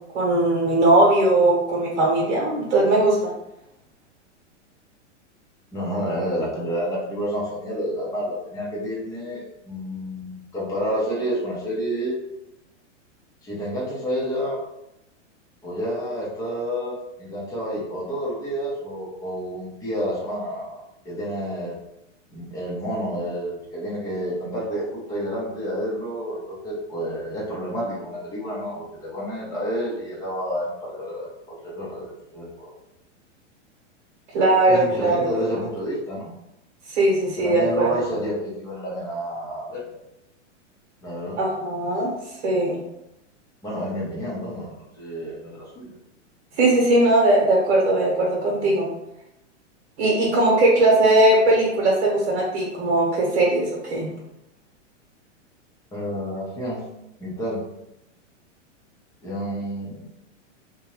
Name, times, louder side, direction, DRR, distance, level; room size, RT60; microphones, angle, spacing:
voice 1, 0.1-3.3 34.3-35.3 36.9-37.9 41.4-42.1 42.4-42.8 46.6-48.9 50.0-54.1, right 2 dB, 65° right, -3 dB, 1.0 m, -19 dB
voice 2, 5.7-12.2 13.4-14.6 15.6-21.7 22.3-31.3 31.6-32.7 34.7-36.3 37.4-39.8 41.0-41.4 43.6-45.9 55.9-56.8 57.2-57.6 59.2-60.0, equal, 10° left, -6 dB, 0.6 m, -29 dB
2.6 x 2.2 x 2.9 m, 0.88 s
hypercardioid pair, 140°, 37 cm